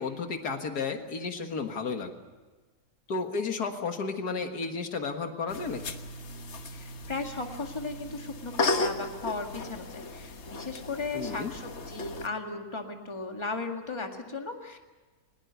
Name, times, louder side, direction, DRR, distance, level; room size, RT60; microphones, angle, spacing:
voice 1, 0.0-2.1 3.1-6.0 11.1-11.5, left 4 dB, 80° left, 6 dB, 2.1 m, -33 dB
sound 1, 5.5-12.3, left 3 dB, 50° left, 1.4 m, -35 dB
voice 2, 6.7-14.8, left 3 dB, 20° left, 3 dB, 1.9 m, -36 dB
20.5 x 20.5 x 8.2 m, 1.3 s
omnidirectional pair, 1.7 m